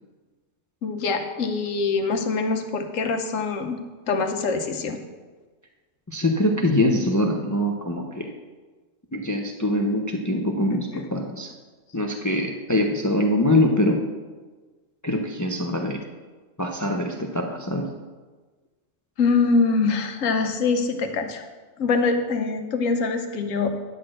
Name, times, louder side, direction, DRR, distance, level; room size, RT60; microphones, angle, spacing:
voice 1, 0.8-3.8 4.1-5.0 19.2-21.4 21.8-23.7, left 4 dB, 80° left, 6 dB, 1.3 m, -24 dB
voice 2, 6.1-8.3 9.1-11.5 11.9-14.0 15.0-16.0 16.6-17.9, left 1 dB, 20° left, 3 dB, 0.5 m, -23 dB
10.0 x 4.3 x 7.6 m, 1.3 s
omnidirectional pair, 1.3 m